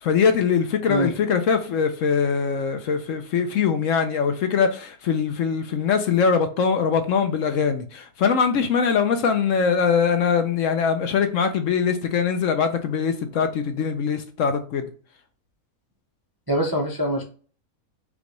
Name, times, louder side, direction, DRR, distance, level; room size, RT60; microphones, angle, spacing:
voice 1, 0.0-14.9, left 6 dB, 65° left, 0.9 m, -22 dB
voice 2, 16.5-17.2, right 1 dB, 30° right, 0.4 m, -23 dB
5.2 x 2.5 x 3.0 m
omnidirectional pair, 1.6 m